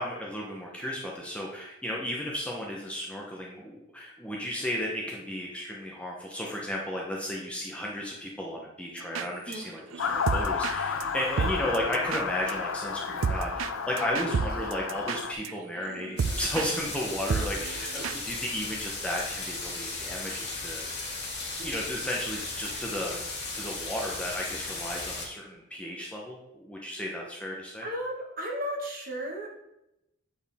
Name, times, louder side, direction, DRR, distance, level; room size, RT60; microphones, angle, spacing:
voice 1, 0.0-20.9 21.6-23.2 23.5-27.9, left 1 dB, 5° left, -3 dB, 0.9 m, -34 dB
sound 1, 9.0-9.6 9.9-16.7 16.9-17.0 17.3-18.2, right 5 dB, 80° right, 0.4 m, -32 dB
Motor vehicle (road) / Siren, 10.0-15.3, left 6 dB, 85° left, 0.5 m, -32 dB
sound 2, 16.2-25.3, left 3 dB, 55° left, 2.2 m, -36 dB
voice 2, 27.8-29.6, equal, 45° right, -1 dB, 1.5 m, -35 dB
7.8 x 4.5 x 3.5 m, 0.86 s
head